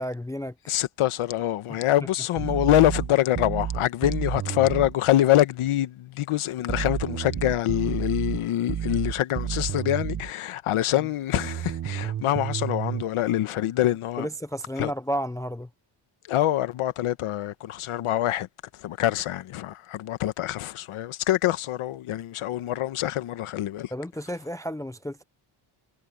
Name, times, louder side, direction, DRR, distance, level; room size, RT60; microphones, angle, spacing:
voice 1, 0.0-0.5 14.2-15.7 23.9-25.2, equal, 5° left, 0.4 m, -32 dB
voice 2, 0.7-14.3 14.8-14.9 16.3-18.5 18.7-23.9, left 13 dB, 75° left, 1.3 m, -25 dB
sound 1, 2.4-4.9 6.7-10.3 11.4-13.0, right 9 dB, 35° right, 1.0 m, -30 dB
cardioid pair, 150°, 50 cm